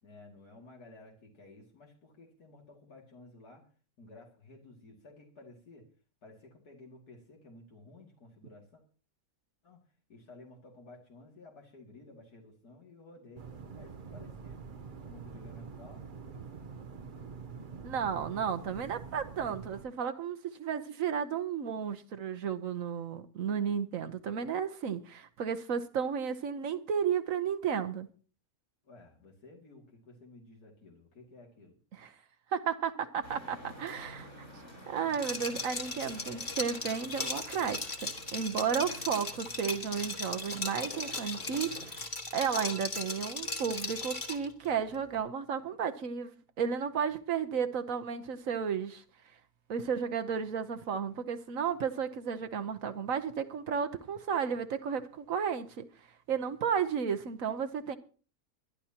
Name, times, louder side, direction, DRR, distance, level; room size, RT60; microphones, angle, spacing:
voice 1, 0.0-3.7 4.0-5.9 6.2-8.8 9.6-9.8 10.1-13.4 13.7-14.6 15.0-16.7 28.8-31.8, left 2 dB, 90° left, 3.0 m, -54 dB
sound 1, 13.4-19.8, right 5 dB, 40° right, 0.8 m, -46 dB
voice 2, 17.8-28.1 31.9-32.1 32.5-34.3 34.9-37.9 38.3-42.0 42.3-49.0 49.7-55.9 56.3-58.0, right 7 dB, 65° right, 1.3 m, -33 dB
sound 2, 33.2-42.0, equal, 70° left, 6.4 m, -50 dB
Liquid, 35.1-44.5, left 2 dB, 30° left, 1.8 m, -37 dB
22.5 x 11.0 x 2.9 m
omnidirectional pair, 1.6 m